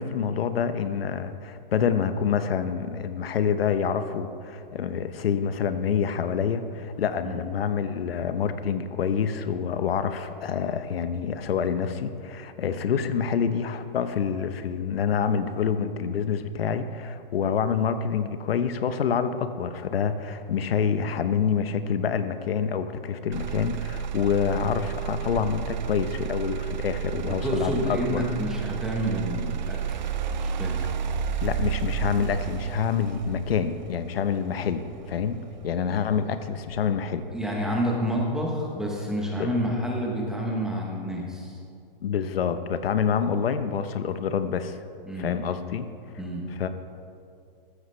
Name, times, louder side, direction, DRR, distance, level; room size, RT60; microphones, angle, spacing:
voice 1, 0.0-28.2 31.4-37.2 39.4-39.5 42.0-44.8 45.2-45.9 46.6-46.7, left 7 dB, 85° left, 10 dB, 0.9 m, -27 dB
Motor vehicle (road), 23.3-37.3 37.8-38.3, right 8 dB, 50° right, 0.6 m, -32 dB
voice 2, 27.1-30.0 30.4-30.8 37.3-41.6 45.1-45.4 46.2-46.5, equal, ahead, -2 dB, 0.8 m, -29 dB
14.5 x 13.0 x 3.2 m, 2.4 s
hypercardioid pair, 170°, 29 cm